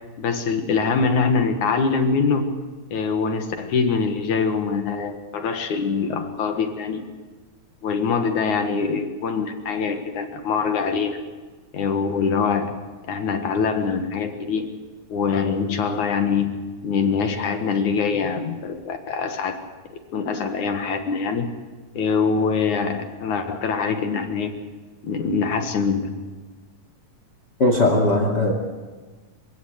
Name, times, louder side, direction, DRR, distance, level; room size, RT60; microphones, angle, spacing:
voice 1, 0.2-2.5 2.9-7.0 7.8-11.2 11.7-12.7 13.1-14.7 15.1-16.6 16.8-19.6 20.1-21.5 21.9-24.5 25.0-26.1, left 5 dB, 60° left, 6 dB, 2.9 m, -23 dB
voice 2, 27.6-28.5, left 2 dB, 30° left, 4 dB, 2.6 m, -18 dB
27.0 x 16.5 x 8.1 m, 1.3 s
omnidirectional pair, 4.1 m